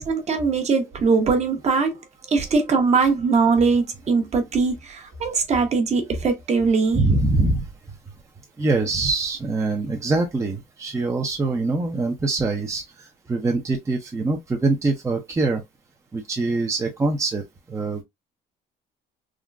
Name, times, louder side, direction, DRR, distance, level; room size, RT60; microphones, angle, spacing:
voice 1, 0.0-2.0 2.3-7.0, right 4 dB, 40° right, 0.9 m, -21 dB
voice 2, 6.9-7.7 8.6-15.6 16.1-17.4 17.7-18.0, right 3 dB, 15° right, 0.6 m, -24 dB
3.7 x 2.1 x 2.3 m
cardioid pair, 110°, 17 cm